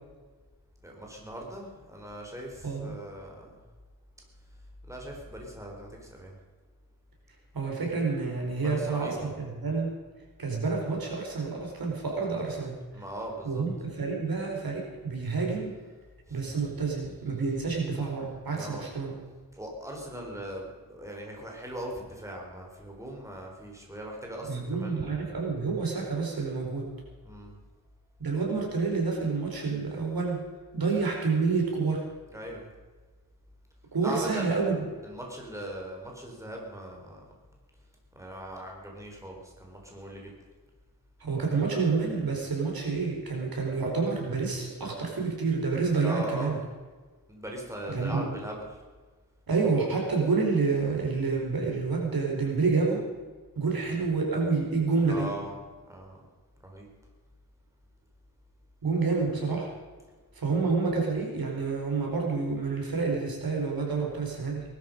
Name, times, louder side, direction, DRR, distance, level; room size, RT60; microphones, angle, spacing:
voice 1, 0.8-3.5 4.9-6.3 8.6-9.3 12.9-13.6 16.3-17.4 17.7-17.8 18.5-18.9 19.5-25.3 27.2-27.6 32.3-32.7 34.0-34.6 35.0-37.2 38.1-40.3 46.0-46.6 47.3-48.8 53.8-54.0 55.0-55.6 55.9-56.2 56.6-56.9, right 1 dB, 10° right, -1 dB, 4.1 m, -40 dB
voice 2, 2.6-2.9 7.5-9.9 10.4-13.0 13.4-15.8 16.3-19.2 24.4-26.9 28.2-30.4 30.7-32.0 33.9-34.8 41.2-46.6 47.9-48.3 49.5-53.0 53.6-55.3 58.8-59.7 60.3-64.6, right 4 dB, 80° right, 0 dB, 4.7 m, -28 dB
19.5 x 12.5 x 5.4 m, 1.4 s
wide cardioid pair, 115°, 35 cm